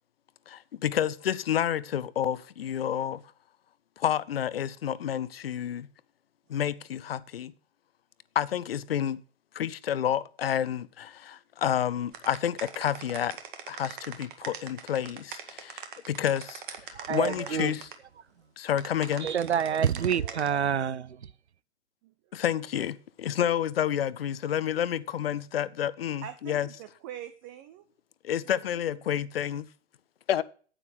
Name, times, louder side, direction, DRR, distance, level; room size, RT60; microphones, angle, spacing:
voice 1, 0.5-3.2 4.0-5.9 6.5-7.5 8.3-9.2 9.5-13.4 13.7-17.9 18.6-19.3 22.3-26.7 28.2-29.7 30.3-30.4, left 10 dB, 55° left, 0.7 m, -29 dB
sound 1, 12.1-17.9 18.7-20.5, right 8 dB, 45° right, 1.9 m, -41 dB
voice 2, 16.9-17.7 19.2-21.3, right 8 dB, 70° right, 0.6 m, -27 dB
voice 3, 26.2-27.8 28.4-28.8, right 11 dB, 20° right, 0.4 m, -44 dB
9.9 x 9.0 x 6.2 m
figure-of-eight pair, 110°, 34 cm